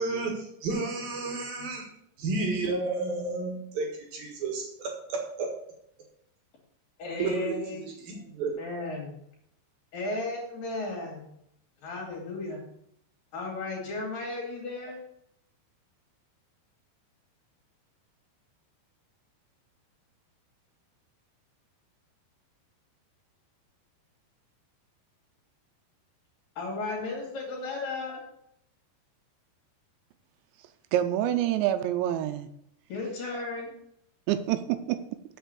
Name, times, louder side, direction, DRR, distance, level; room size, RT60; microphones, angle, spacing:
voice 1, 0.0-5.5 7.2-8.6, right 3 dB, 60° right, 3.0 m, -32 dB
voice 2, 7.0-7.9 8.6-9.1 9.9-11.3 11.8-12.6 13.3-15.0 26.6-28.2 32.9-33.7, left 3 dB, 55° left, 4.0 m, -34 dB
voice 3, 30.9-32.5 34.3-35.0, right 12 dB, 80° right, 2.9 m, -27 dB
7.8 x 7.2 x 6.8 m
omnidirectional pair, 5.2 m